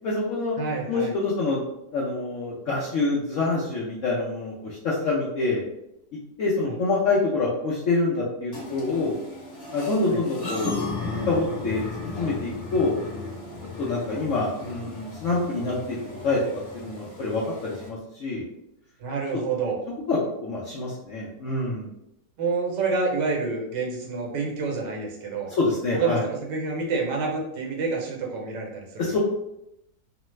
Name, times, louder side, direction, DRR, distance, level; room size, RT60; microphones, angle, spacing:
voice 1, 0.0-0.5 0.9-1.6 1.9-5.6 6.4-9.1 9.7-10.8 11.3-11.8 12.2-13.0 13.8-16.4 16.7-18.5 19.3-19.4 20.1-21.9 25.5-26.2 29.0-29.2, left 3 dB, 70° left, -5 dB, 0.7 m, -26 dB
voice 2, 0.6-1.1 6.6-6.8 10.1-10.2 19.0-19.8 22.4-25.5 25.9-29.1, right 4 dB, 80° right, 0 dB, 1.3 m, -28 dB
sound 1, 8.5-17.9, left 2 dB, 30° left, 0.8 m, -35 dB
3.1 x 2.0 x 3.0 m, 0.82 s
omnidirectional pair, 1.9 m